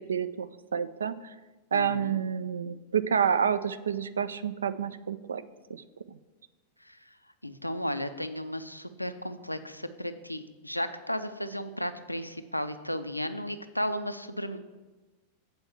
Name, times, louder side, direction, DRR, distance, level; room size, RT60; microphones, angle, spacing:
voice 1, 0.1-1.3 1.7-5.4 5.7-6.2, right 7 dB, 70° right, 14 dB, 0.3 m, -29 dB
voice 2, 1.7-2.2 6.9-7.0 7.4-14.6, equal, 90° left, 10 dB, 0.4 m, -34 dB
7.9 x 4.5 x 7.0 m, 1.2 s
figure-of-eight pair, 90°, 0 cm